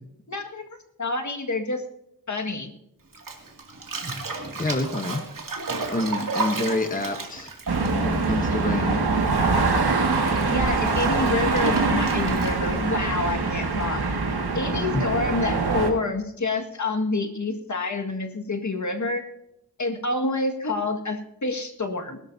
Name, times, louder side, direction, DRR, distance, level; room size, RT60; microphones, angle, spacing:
voice 1, 0.3-0.7 1.0-1.8 2.3-2.7 6.2-6.3 10.5-14.0 14.5-19.2 19.8-22.2, left 3 dB, 50° left, 4 dB, 1.8 m, -28 dB
Bathtub (filling or washing), 3.1-9.0 9.2-12.8, right 3 dB, 60° right, 2.5 m, -33 dB
voice 2, 4.6-5.2 5.9-7.5 8.0-9.0 14.7-15.0, left 2 dB, 20° left, 5 dB, 1.1 m, -27 dB
sound 1, 7.7-15.9, right 4 dB, 80° right, 2.1 m, -23 dB
21.0 x 12.5 x 2.8 m, 0.83 s
wide cardioid pair, 105°, 38 cm